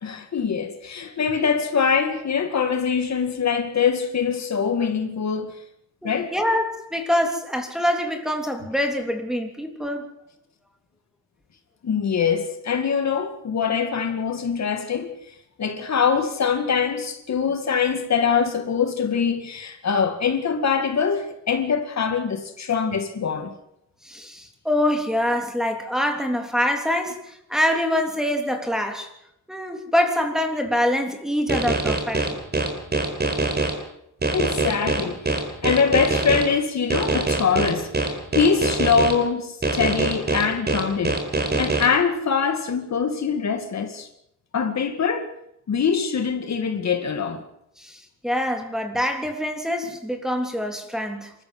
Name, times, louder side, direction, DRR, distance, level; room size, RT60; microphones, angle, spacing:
voice 1, 0.0-5.6 6.0-6.3 11.8-15.1 15.6-23.5 34.3-41.2 41.6-44.1 44.5-45.3 45.7-47.4, left 6 dB, 55° left, 2.2 m, -23 dB
voice 2, 6.0-10.1 24.0-29.1 29.5-32.3 47.8-51.3, left 1 dB, ahead, 3.3 m, -25 dB
sound 1, 31.5-33.7 34.2-36.4 36.9-39.1 39.6-41.8, right 3 dB, 30° right, 4.5 m, -23 dB
27.0 x 14.0 x 8.0 m
wide cardioid pair, 130°, 32 cm